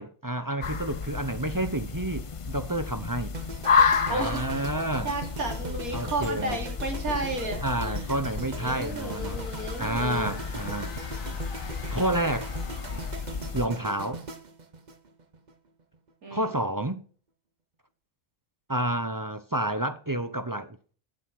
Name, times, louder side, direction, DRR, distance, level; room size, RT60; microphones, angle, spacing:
voice 1, 0.0-3.3 4.1-5.1 5.9-6.6 7.6-9.4 9.8-10.9 11.9-12.5 13.5-14.3 16.3-17.0 18.7-20.8, right 1 dB, 20° right, 0.6 m, -29 dB
sound 1, 0.6-13.7, left 5 dB, 50° left, 0.4 m, -31 dB
sound 2, 3.3-15.5 15.8-16.1, right 3 dB, 35° right, 1.0 m, -40 dB
voice 2, 4.1-4.6 5.0-8.1 8.6-10.4 16.2-16.5, right 2 dB, 90° right, 3.6 m, -33 dB
sound 3, 8.4-13.4, left 4 dB, 70° left, 2.3 m, -46 dB
15.0 x 7.8 x 6.0 m
omnidirectional pair, 1.5 m